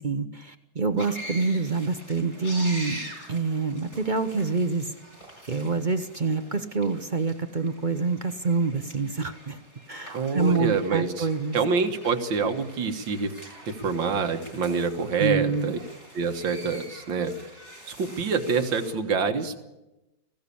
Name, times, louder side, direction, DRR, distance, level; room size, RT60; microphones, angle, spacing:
voice 1, 0.0-3.0 3.3-4.9 5.5-9.6 9.9-11.6 15.2-15.7, right 4 dB, 40° right, 9 dB, 0.7 m, -26 dB
sound 1, 1.0-18.9, right 1 dB, 50° left, 6.9 m, -45 dB
voice 2, 10.1-11.3 11.5-13.3 13.6-15.8 16.1-17.3 17.9-19.6, right 5 dB, 90° right, 7 dB, 2.2 m, -26 dB
19.5 x 16.0 x 8.5 m, 1.0 s
omnidirectional pair, 2.0 m